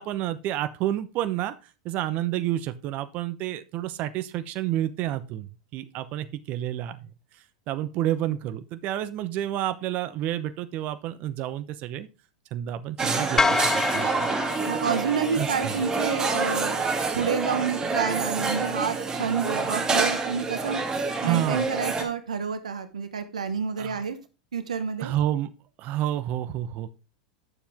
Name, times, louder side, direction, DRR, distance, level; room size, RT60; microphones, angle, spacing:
voice 1, 0.0-1.5 1.8-7.0 7.7-12.1 12.5-14.3 15.3-15.8 21.2-21.7 23.8-24.0 25.0-25.5 25.8-26.9, right 12 dB, 45° right, 12 dB, 0.9 m, -29 dB
sound 1, 13.0-22.0, right 4 dB, 20° right, 2.4 m, -27 dB
sound 2, 13.4-15.7, left 4 dB, 15° left, 0.5 m, -27 dB
voice 2, 14.7-16.8 17.1-20.8 21.2-24.2 24.5-25.1, right 6 dB, 85° right, 10 dB, 1.1 m, -29 dB
10.0 x 7.1 x 3.6 m, 0.31 s
hypercardioid pair, 95°, 4 cm